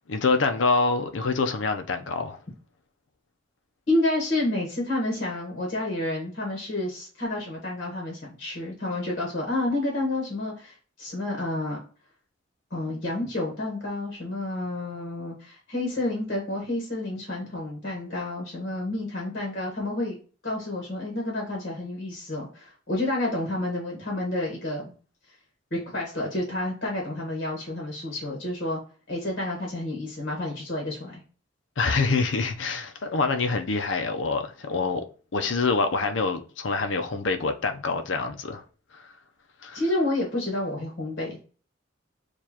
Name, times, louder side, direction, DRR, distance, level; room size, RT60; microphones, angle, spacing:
voice 1, 0.1-2.4 31.8-35.0 35.3-38.6 39.6-39.8, left 4 dB, 70° left, 0.6 m, -26 dB
voice 2, 3.9-11.8 12.7-20.2 20.4-24.9 25.7-28.8 29.1-31.2 39.7-41.4, left 1 dB, 50° left, 1.4 m, -29 dB
6.6 x 2.5 x 2.9 m
head